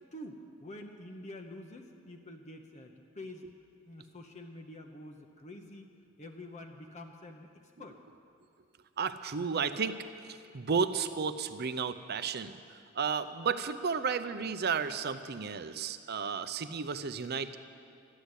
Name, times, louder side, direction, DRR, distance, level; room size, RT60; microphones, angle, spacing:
voice 1, 0.0-3.5 3.8-5.9 6.2-8.0, left 1 dB, 35° left, 3 dB, 0.9 m, -47 dB
voice 2, 9.0-10.0 10.3-12.5 13.0-17.6, right 5 dB, 55° right, 11 dB, 0.6 m, -33 dB
13.0 x 10.0 x 8.1 m, 2.4 s
head